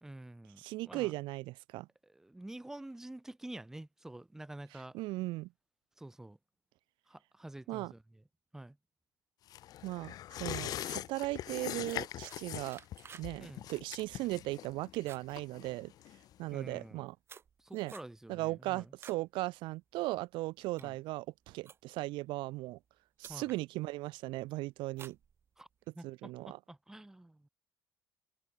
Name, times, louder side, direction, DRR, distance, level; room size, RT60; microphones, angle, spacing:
voice 1, 0.0-1.1 2.0-5.0 6.0-6.4 7.1-8.2 8.5-8.8 13.4-13.7 16.5-17.1 17.6-18.9 20.8-21.0 23.3-23.4 25.6-25.7 25.9-27.5, right 1 dB, 5° right, 1.6 m, -48 dB
voice 2, 0.6-1.9 4.9-5.5 7.7-7.9 9.8-12.8 13.1-15.9 16.4-17.1 17.7-17.9 18.3-22.8 23.2-25.2 26.0-26.6, right 20 dB, 75° right, 0.8 m, -37 dB
sound 1, 9.5-16.5 16.9-17.0, left 13 dB, 50° left, 1.2 m, -42 dB
sound 2, 11.8-13.3 13.6-14.0 14.4-14.7 14.9-16.1 16.7-19.3 19.7-20.0 20.5-22.1 22.8-22.9 23.2-23.6 24.1-24.5 24.9-25.9, right 7 dB, 30° right, 6.2 m, -55 dB
open air
cardioid pair, 160°, 8 cm